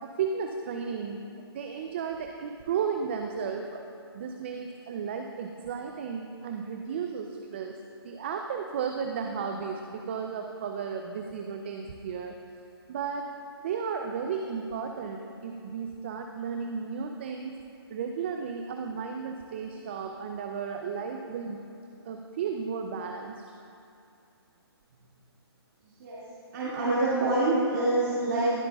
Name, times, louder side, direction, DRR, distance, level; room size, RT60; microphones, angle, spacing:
voice 1, 0.0-1.2 1.5-3.8 4.1-7.8 8.0-12.4 12.9-13.3 13.6-17.6 17.9-21.6 22.0-23.4, right 6 dB, 25° right, 4 dB, 0.4 m, -34 dB
voice 2, 26.5-28.5, right 2 dB, 45° right, -9 dB, 2.1 m, -26 dB
19.5 x 7.8 x 2.3 m, 2.6 s
hypercardioid pair, 160°, 14 cm